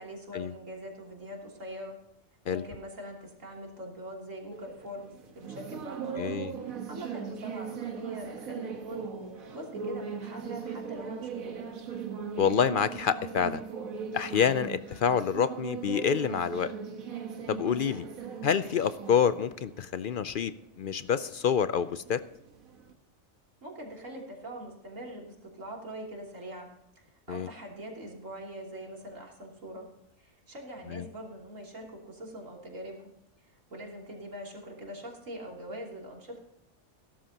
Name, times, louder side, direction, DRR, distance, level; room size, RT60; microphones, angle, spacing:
voice 1, 0.0-1.9 2.5-9.1 9.5-11.7 23.6-26.7 26.9-29.8 30.2-33.1 33.4-36.4, right 1 dB, 70° right, -1 dB, 3.4 m, -43 dB
sound 1, 4.5-22.9, right 6 dB, 90° right, 1.7 m, -40 dB
voice 2, 6.2-6.5 12.4-13.6 14.1-16.7 17.5-18.1 18.4-20.5 20.8-22.2 27.3-27.5 30.9-31.0, left 7 dB, 65° left, 13 dB, 0.5 m, -27 dB
16.5 x 13.0 x 2.9 m, 0.85 s
omnidirectional pair, 1.4 m